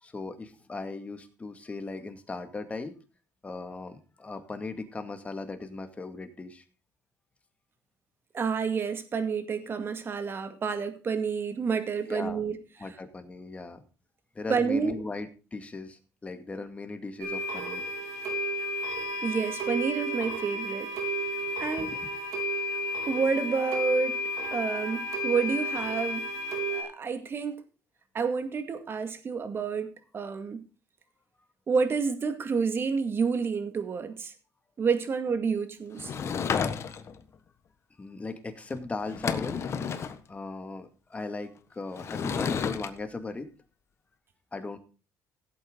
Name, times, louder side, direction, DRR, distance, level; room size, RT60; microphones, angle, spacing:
voice 1, 0.0-3.0 3.4-6.6 12.1-12.4 12.8-13.8 14.3-17.8 21.8-22.0 38.0-39.6 40.3-43.5 44.5-44.8, left 3 dB, 20° left, 7 dB, 2.2 m, -38 dB
voice 2, 8.3-12.6 14.5-14.9 19.2-20.9 21.6-21.9 23.1-24.2 24.5-26.3 26.7-27.6 28.1-30.6 31.7-34.3 34.8-36.2, right 5 dB, 35° right, 9 dB, 2.2 m, -29 dB
sound 1, 17.2-26.8, equal, 70° right, 4.2 m, -32 dB
Sliding door / Wood, 36.0-37.2 38.7-38.8 39.0-40.2 41.9-42.9, left 6 dB, 45° left, 1.4 m, -31 dB
16.0 x 8.5 x 3.9 m, 0.35 s
cardioid pair, 105°, 6 cm